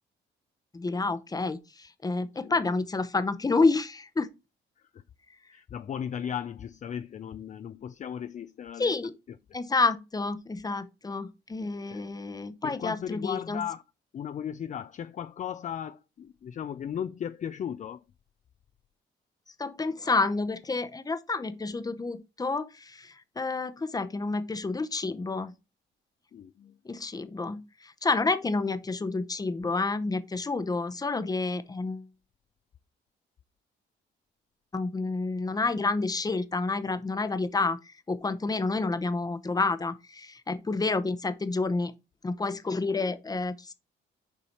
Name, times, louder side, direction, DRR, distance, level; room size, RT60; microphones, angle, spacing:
voice 1, 0.7-4.3 8.8-9.1 9.5-13.6 19.6-25.5 26.8-32.1 34.7-41.9 42.2-43.7, left 3 dB, 20° left, 0.7 m, -29 dB
voice 2, 5.5-9.0 11.9-12.0 12.6-13.8 14.1-18.0 26.3-26.8, left 9 dB, 40° left, 0.4 m, -36 dB
6.9 x 4.8 x 4.2 m
cardioid pair, 90°, 20 cm